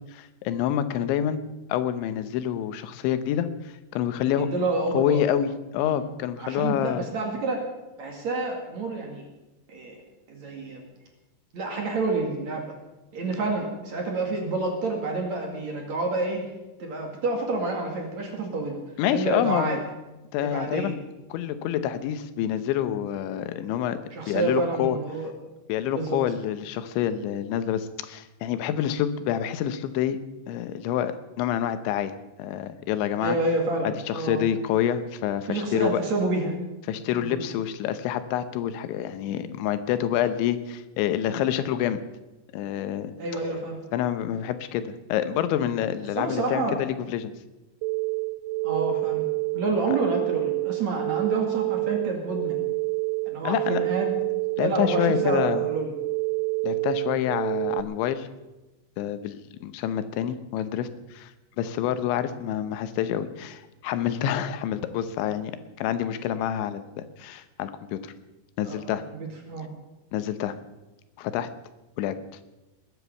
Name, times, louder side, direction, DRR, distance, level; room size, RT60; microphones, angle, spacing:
voice 1, 0.1-1.4 1.7-3.5 3.9-4.5 4.9-7.1 19.0-19.8 20.3-21.0 21.3-24.0 24.3-25.0 25.7-30.2 30.5-33.4 33.8-36.0 36.9-42.0 42.5-43.1 43.9-47.3 53.4-53.8 54.6-55.6 56.6-58.3 59.0-61.3 61.6-65.5 65.8-68.1 68.6-69.0 70.1-70.5 71.2-71.5 72.0-72.2, left 10 dB, 90° left, 11 dB, 3.3 m, -27 dB
voice 2, 4.4-5.2 5.8-6.0 6.4-7.6 8.0-9.2 9.7-10.0 10.3-10.8 11.5-12.8 13.1-16.5 16.8-18.8 19.1-19.8 20.4-20.9 24.1-25.3 25.9-26.2 33.2-34.5 35.5-36.5 37.1-37.4 43.2-43.8 46.2-46.8 48.6-49.2 49.5-52.6 53.3-54.1 54.6-55.9 68.6-69.7, right 2 dB, 45° right, 2 dB, 2.9 m, -28 dB
sound 1, 47.8-57.8, right 30 dB, 80° right, 2.7 m, -28 dB
20.5 x 9.8 x 7.1 m, 1.0 s
omnidirectional pair, 5.2 m